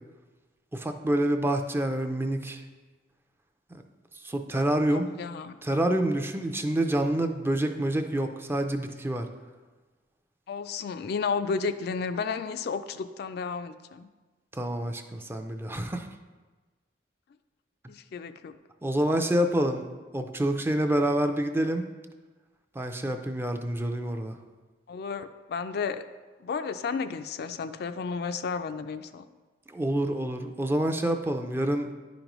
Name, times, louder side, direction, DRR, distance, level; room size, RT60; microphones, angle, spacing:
voice 1, 0.7-2.6 4.2-5.1 5.6-9.3 14.5-16.1 18.8-19.9 20.1-21.8 22.8-24.4 29.7-31.9, right 1 dB, 15° right, 6 dB, 0.4 m, -27 dB
voice 2, 4.9-5.6 10.5-14.1 17.9-18.5 24.9-26.0 26.4-29.3, left 5 dB, 60° left, 10 dB, 0.3 m, -32 dB
10.0 x 5.1 x 3.0 m, 1.3 s
head